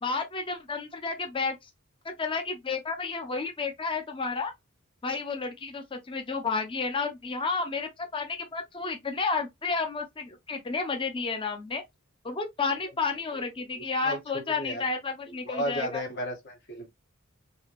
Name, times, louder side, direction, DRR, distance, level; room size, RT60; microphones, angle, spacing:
voice 1, 0.0-1.7 2.0-4.5 5.0-11.8 12.2-16.0, left 4 dB, 25° left, 0.6 m, -31 dB
voice 2, 13.8-14.8 15.4-16.9, equal, 55° left, 1.4 m, -34 dB
3.4 x 2.8 x 2.9 m
head